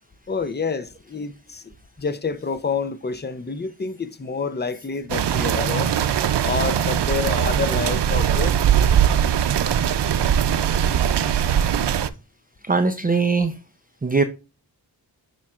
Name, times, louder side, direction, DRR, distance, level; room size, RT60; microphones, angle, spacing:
voice 1, 0.3-6.0 6.4-8.6, left 5 dB, 25° left, 0.6 m, -28 dB
sound 1, 5.1-12.1, right 9 dB, 80° right, 0.6 m, -20 dB
voice 2, 12.6-13.5 14.0-14.2, right 4 dB, 20° right, 0.6 m, -20 dB
7.2 x 6.0 x 2.4 m
cardioid pair, 50°, 41 cm